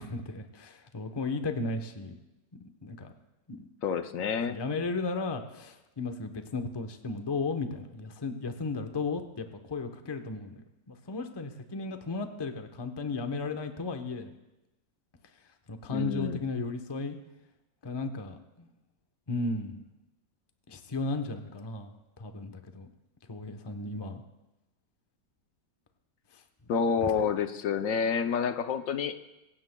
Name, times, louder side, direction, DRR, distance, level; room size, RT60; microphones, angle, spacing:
voice 1, 0.0-2.1 2.6-3.1 3.5-3.7 4.5-14.4 15.7-17.2 17.8-18.7 19.3-19.8 20.7-22.9 23.3-24.2 27.0-27.1, left 3 dB, 25° left, 6 dB, 0.6 m, -35 dB
voice 2, 3.8-4.6 15.9-16.4 26.7-29.2, left 6 dB, 65° left, 8 dB, 0.9 m, -28 dB
24.5 x 15.5 x 2.2 m, 0.98 s
omnidirectional pair, 1.8 m